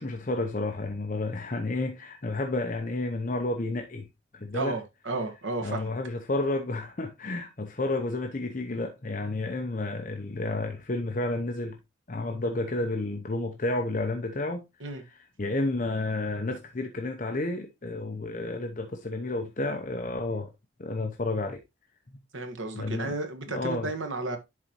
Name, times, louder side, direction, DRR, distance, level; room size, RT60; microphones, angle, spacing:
voice 1, 0.0-4.1 4.3-4.8 5.6-11.8 12.1-14.6 15.4-20.5 20.8-21.6 22.7-23.1 23.5-23.9, left 2 dB, 40° left, 0.7 m, -31 dB
voice 2, 4.5-5.9 14.8-15.0 22.3-24.4, right 3 dB, 85° right, 1.4 m, -33 dB
11.0 x 4.0 x 2.9 m
head